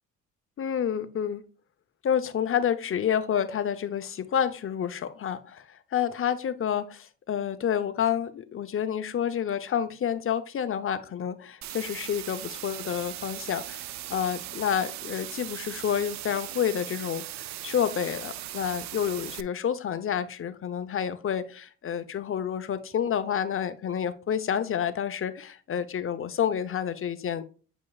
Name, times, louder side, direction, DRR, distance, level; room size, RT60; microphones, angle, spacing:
voice 1, 0.6-1.4 2.0-27.4, left 8 dB, 45° left, 11 dB, 0.8 m, -29 dB
sound 1, 11.6-19.4, right 14 dB, 65° right, 0.5 m, -39 dB
8.0 x 5.2 x 2.4 m, 0.37 s
cardioid pair, 90°, 30 cm